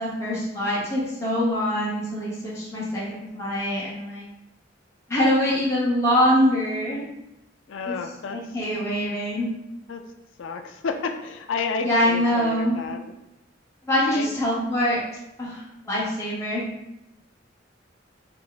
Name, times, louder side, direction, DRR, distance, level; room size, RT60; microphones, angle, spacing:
voice 1, 0.0-4.3 5.1-7.1 7.8-8.0 8.3-9.5 11.8-12.8 13.8-15.0 15.4-16.6, equal, 15° left, -8 dB, 0.9 m, -24 dB
voice 2, 7.7-8.4 9.9-10.0 10.4-13.0 14.1-14.3, left 4 dB, 80° left, 5 dB, 0.4 m, -31 dB
3.3 x 2.0 x 3.9 m, 0.90 s
head